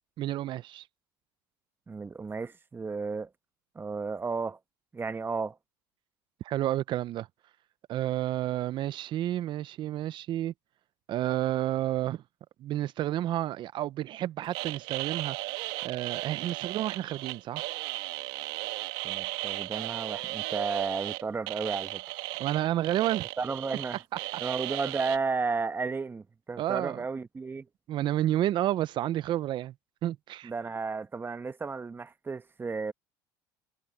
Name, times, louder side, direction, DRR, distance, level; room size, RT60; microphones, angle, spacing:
voice 1, 0.2-0.8 6.4-7.3 7.9-10.5 11.1-12.2 12.6-15.4 15.8-17.7 22.4-23.3 26.6-27.0 27.9-29.7 30.0-30.5, right 13 dB, 50° right, 0.8 m, -30 dB
voice 2, 1.9-3.3 3.7-4.6 4.9-5.5 19.0-22.0 23.4-24.0 24.4-27.7 30.4-32.9, right 4 dB, 20° right, 1.4 m, -33 dB
sound 1, 14.5-25.2, right 21 dB, 75° right, 2.8 m, -36 dB
supercardioid pair, 90°, 10 cm